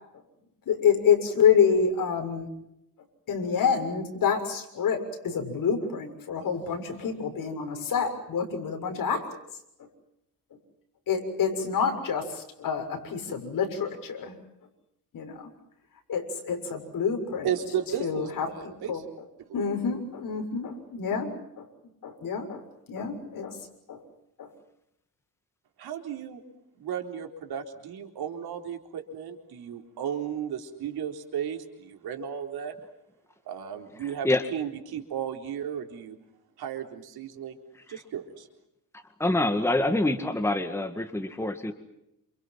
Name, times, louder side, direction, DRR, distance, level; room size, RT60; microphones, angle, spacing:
voice 1, 0.7-2.5 3.3-9.2 11.1-14.3 15.1-15.5 16.1-17.5 18.0-18.5 18.9-19.0 19.5-21.7 22.0-22.6 22.9-23.6 23.9-24.0 24.4-24.5, left 6 dB, 60° left, 4 dB, 6.7 m, -27 dB
voice 2, 17.4-19.0 19.5-19.6 25.8-26.4 26.8-32.7 33.5-36.2 36.6-37.6 37.9-38.5, right 8 dB, 80° right, 4 dB, 4.1 m, -34 dB
voice 3, 34.0-34.4 37.9-38.0 39.2-41.7, left 2 dB, 5° left, 7 dB, 1.9 m, -26 dB
29.0 x 28.0 x 5.9 m, 0.82 s
cardioid pair, 135°, 37 cm